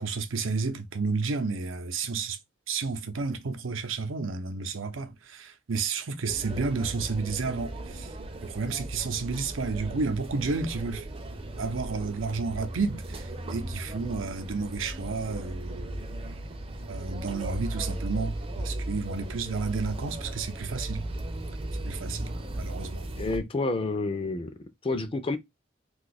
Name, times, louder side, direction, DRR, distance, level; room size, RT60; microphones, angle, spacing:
voice 1, 0.0-2.4 2.7-8.2 8.4-11.1 11.6-16.0 16.9-21.0 21.8-23.1, right 4 dB, 85° right, 0.6 m, -31 dB
sound 1, 6.3-23.4, right 1 dB, 30° right, 0.5 m, -36 dB
voice 2, 23.2-24.5 24.8-25.4, left 3 dB, 30° left, 0.4 m, -29 dB
2.7 x 2.4 x 4.0 m
head